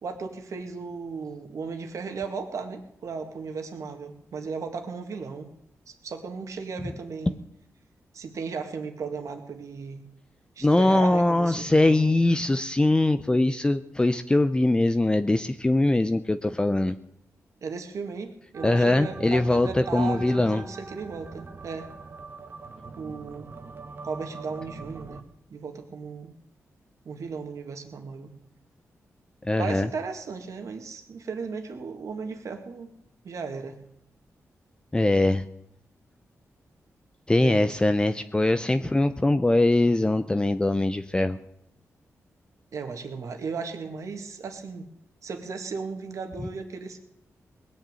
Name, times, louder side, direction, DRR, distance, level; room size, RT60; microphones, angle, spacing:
voice 1, 0.0-5.5 5.9-7.4 8.1-10.0 10.6-12.2 17.6-21.9 23.0-23.5 24.0-25.2 25.5-26.3 27.1-28.3 29.6-32.9 33.2-33.8 37.4-37.8 42.7-44.9 45.2-47.0, right 5 dB, 70° right, 5 dB, 2.0 m, -36 dB
voice 2, 10.6-17.0 18.6-20.6 29.4-29.9 34.9-35.4 37.3-41.4, left 2 dB, 15° left, 10 dB, 0.6 m, -22 dB
sound 1, 18.5-25.2, right 4 dB, 40° right, 1.1 m, -42 dB
19.5 x 6.6 x 9.1 m, 0.76 s
cardioid pair, 90°, 6 cm